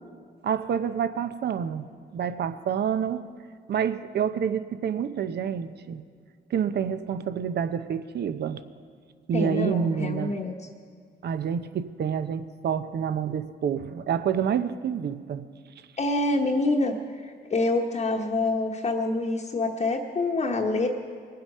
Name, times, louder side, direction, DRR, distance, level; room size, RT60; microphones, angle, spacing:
voice 1, 0.4-3.3 3.7-6.0 6.5-8.6 9.3-10.4 11.2-15.4, right 8 dB, 55° right, 12 dB, 0.7 m, -28 dB
voice 2, 9.3-10.5 16.0-20.9, left 2 dB, 35° left, 1 dB, 1.1 m, -26 dB
21.0 x 7.8 x 5.5 m, 2.1 s
cardioid pair, 90°, 20 cm